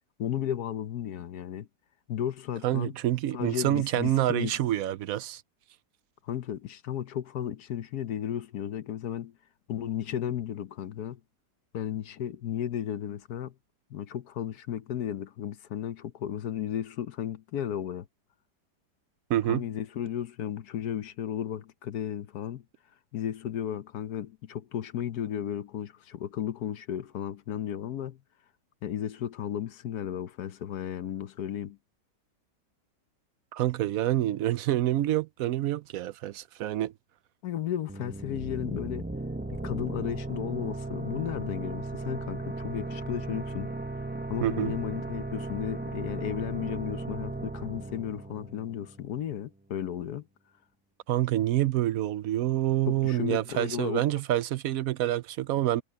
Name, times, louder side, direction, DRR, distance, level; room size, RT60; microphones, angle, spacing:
voice 1, 0.2-1.7 2.1-2.9 3.3-4.6 6.3-9.3 9.7-11.2 11.7-13.5 13.9-18.1 19.5-22.6 23.1-28.2 28.8-31.8 37.4-39.1 39.6-43.7 44.3-50.3 52.9-54.0, left 10 dB, 65° left, 1.3 m, -34 dB
voice 2, 2.6-5.4 19.3-19.7 33.5-36.9 44.4-44.7 51.1-55.8, right 13 dB, 70° right, 0.9 m, -27 dB
sound 1, 37.9-49.3, right 2 dB, 10° right, 0.6 m, -36 dB
omnidirectional pair, 1.9 m